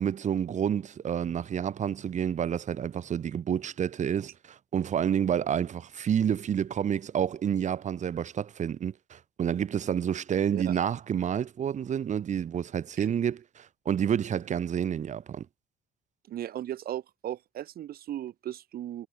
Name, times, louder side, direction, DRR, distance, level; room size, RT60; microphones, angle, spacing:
voice 1, 0.0-15.5, right 8 dB, 45° right, 2.0 m, -29 dB
voice 2, 16.3-19.1, right 12 dB, 60° right, 5.4 m, -37 dB
cardioid pair, 110°, 17 cm